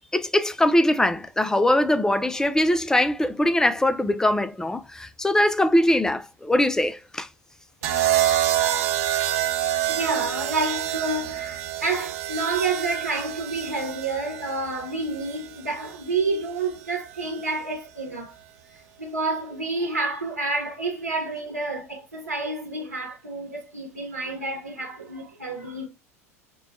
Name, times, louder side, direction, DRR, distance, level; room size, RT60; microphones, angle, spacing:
voice 1, 0.1-7.3, left 1 dB, 5° left, 0.3 m, -22 dB
sound 1, 7.8-16.0 17.2-17.6, right 12 dB, 65° right, 0.6 m, -27 dB
voice 2, 7.8-18.3 18.7-25.9, right 3 dB, 90° right, 0.9 m, -29 dB
5.9 x 2.1 x 2.6 m
hypercardioid pair, 85°, 8 cm